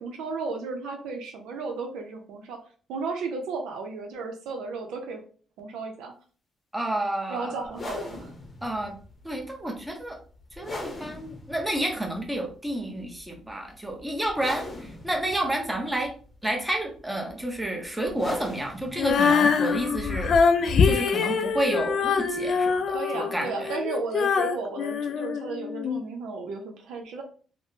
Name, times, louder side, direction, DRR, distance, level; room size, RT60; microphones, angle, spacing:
voice 1, 0.0-2.6 2.9-5.2 5.6-6.1 7.3-8.3 22.9-27.2, right 4 dB, 90° right, 3 dB, 0.6 m, -34 dB
voice 2, 6.7-7.7 8.6-8.9 9.2-10.2 10.6-14.7 15.0-16.1 16.4-20.4 20.8-23.7, right 1 dB, 10° right, 2 dB, 0.8 m, -30 dB
sound 1, 7.6-23.0, left 2 dB, 35° left, 0.7 m, -43 dB
Female singing, 19.0-26.0, left 5 dB, 60° left, 0.4 m, -24 dB
3.3 x 2.1 x 2.7 m, 0.41 s
cardioid pair, 90°, 0 cm